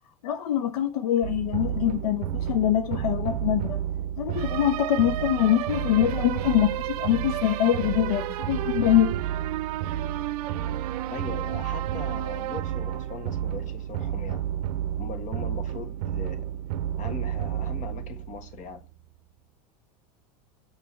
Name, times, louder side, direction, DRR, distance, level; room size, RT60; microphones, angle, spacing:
voice 1, 0.2-3.8 4.2-9.1, left 11 dB, 80° left, 0.6 m, -24 dB
sound 1, 1.2-18.8, right 11 dB, 75° right, 0.5 m, -30 dB
voice 2, 11.0-14.4 15.0-16.5 17.0-18.8, left 5 dB, 40° left, 1.4 m, -40 dB
6.8 x 5.4 x 3.2 m
supercardioid pair, 110°, 19 cm